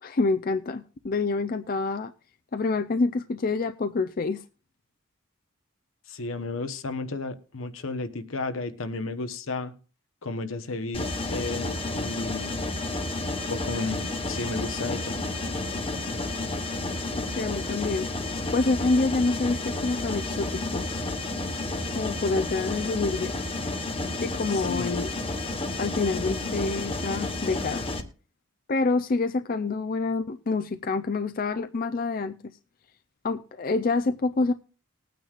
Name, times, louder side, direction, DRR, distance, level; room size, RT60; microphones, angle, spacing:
voice 1, 0.0-2.1 2.5-4.4 17.1-18.1 18.5-20.9 21.9-23.3 24.2-25.1 25.8-27.9 28.7-32.4 33.2-34.5, left 3 dB, 45° left, 0.4 m, -27 dB
voice 2, 6.1-9.7 10.2-12.5 13.5-15.4 24.5-25.0, left 3 dB, 75° left, 1.0 m, -33 dB
Mechanisms, 10.9-28.0, left 2 dB, 25° left, 1.2 m, -31 dB
20.5 x 9.2 x 2.4 m
head